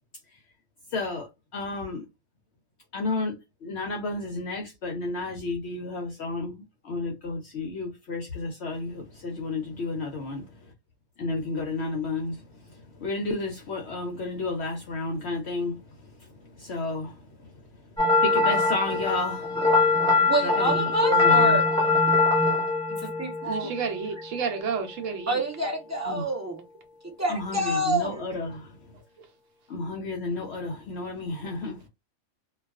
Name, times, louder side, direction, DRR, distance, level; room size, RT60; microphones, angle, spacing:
voice 1, 0.9-2.1 2.9-10.7 11.2-20.0 20.4-21.6 23.0-23.1 23.6-23.7 26.0-26.3 27.3-29.0 29.7-31.9, left 3 dB, 65° left, 0.7 m, -32 dB
sound 1, 18.0-24.2, left 3 dB, 5° left, 1.1 m, -22 dB
voice 2, 20.3-21.6 22.9-23.7 25.3-26.6 27.0-28.2, right 1 dB, 20° right, 0.4 m, -28 dB
voice 3, 23.5-25.4, right 6 dB, 70° right, 0.9 m, -31 dB
2.3 x 2.3 x 2.3 m
omnidirectional pair, 1.5 m